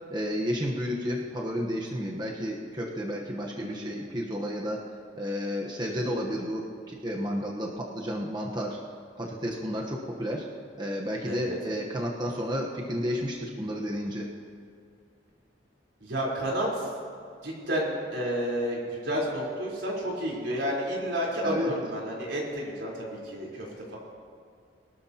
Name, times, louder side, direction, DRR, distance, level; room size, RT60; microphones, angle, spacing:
voice 1, 0.1-4.8 5.1-8.8 9.2-10.5 10.8-14.3 21.4-21.7, equal, 25° right, -1 dB, 1.1 m, -32 dB
voice 2, 3.6-4.0 11.3-11.6 16.0-16.9 17.4-24.0, equal, 85° right, -4 dB, 4.1 m, -31 dB
22.0 x 13.0 x 2.9 m, 2.3 s
head